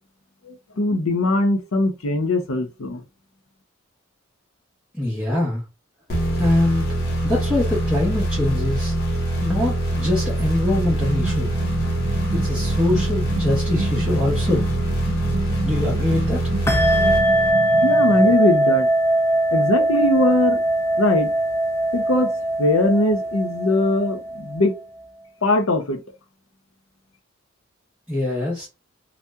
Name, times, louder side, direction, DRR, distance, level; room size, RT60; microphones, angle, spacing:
voice 1, 0.5-3.0 17.8-18.9 19.5-20.6 21.0-21.3 21.9-22.3 22.6-24.7 25.4-26.0, left 2 dB, 85° left, 0.7 m, -20 dB
voice 2, 4.9-5.6 6.4-6.9 7.2-8.9 9.4-11.5 12.3-14.7 15.6-16.5 28.1-28.7, left 1 dB, 5° right, 0.9 m, -23 dB
sound 1, 6.1-17.8, right 1 dB, 50° left, 0.8 m, -24 dB
kitchen ambience vase, 11.0-18.4, right 3 dB, 70° right, 0.5 m, -30 dB
sound 2, 16.7-24.8, right 1 dB, 15° left, 0.4 m, -21 dB
2.7 x 2.1 x 3.4 m
head